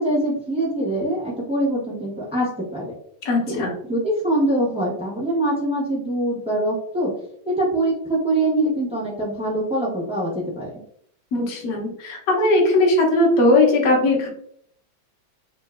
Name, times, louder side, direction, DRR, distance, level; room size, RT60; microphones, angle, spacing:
voice 1, 0.0-2.9 3.5-3.6 3.9-7.1 7.4-10.8, right 1 dB, 5° right, -7 dB, 0.5 m, -23 dB
voice 2, 3.2-3.7 11.3-14.3, left 2 dB, 55° left, 0 dB, 1.1 m, -18 dB
3.8 x 2.5 x 2.4 m, 0.66 s
omnidirectional pair, 2.3 m